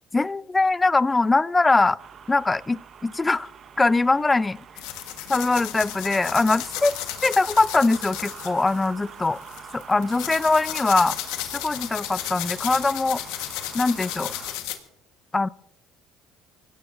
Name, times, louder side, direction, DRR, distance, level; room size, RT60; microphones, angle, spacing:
voice 1, 0.1-2.0 2.3-3.5 3.8-4.6 5.3-6.9 7.2-9.4 9.7-11.2 11.4-13.2 13.7-14.3 15.3-15.5, left 3 dB, 15° left, 18 dB, 0.5 m, -22 dB
sound 1, 2.0-14.6, right 7 dB, 45° right, 0.8 m, -45 dB
sound 2, 4.8-14.8, left 13 dB, 85° left, 1.4 m, -34 dB
24.0 x 16.5 x 2.6 m, 0.77 s
supercardioid pair, 100°, 0 cm